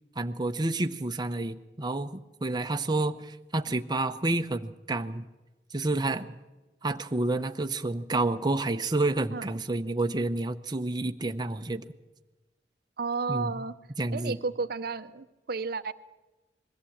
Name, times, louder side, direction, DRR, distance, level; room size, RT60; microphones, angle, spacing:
voice 1, 0.2-5.2 5.7-6.3 6.8-11.9 13.3-13.6 14.0-14.4, right 2 dB, 25° right, 6 dB, 0.7 m, -29 dB
voice 2, 13.0-13.7 14.1-15.9, right 4 dB, 60° right, 12 dB, 0.7 m, -32 dB
21.5 x 14.5 x 8.6 m, 1.1 s
head